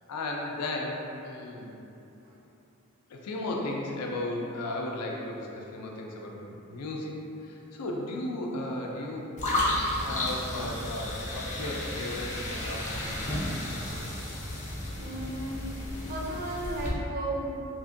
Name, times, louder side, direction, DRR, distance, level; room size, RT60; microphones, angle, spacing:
voice 1, 0.1-1.8 3.1-7.1 7.4-9.3 10.0-13.2 13.9-14.0, left 1 dB, 85° left, -1 dB, 0.4 m, -35 dB
sound 1, 9.4-16.9, left 1 dB, 30° left, 0.5 m, -33 dB
voice 2, 15.0-15.8 16.1-17.7, right 1 dB, 45° right, -3 dB, 0.5 m, -34 dB
2.8 x 2.5 x 2.5 m, 2.8 s
head